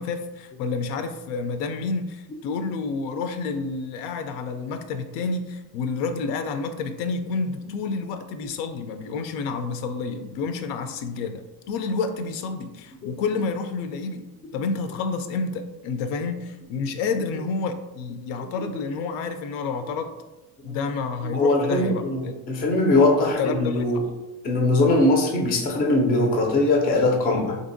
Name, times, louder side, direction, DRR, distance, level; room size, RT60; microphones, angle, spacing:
voice 1, 0.0-14.2 14.5-20.1 20.6-22.3 23.2-23.8, left 4 dB, 85° left, 8 dB, 0.5 m, -29 dB
voice 2, 18.4-18.7 20.7-20.8 21.2-24.0 24.4-27.6, left 2 dB, 25° left, 2 dB, 0.3 m, -21 dB
3.5 x 2.6 x 2.5 m, 1.1 s
cardioid pair, 150°, 42 cm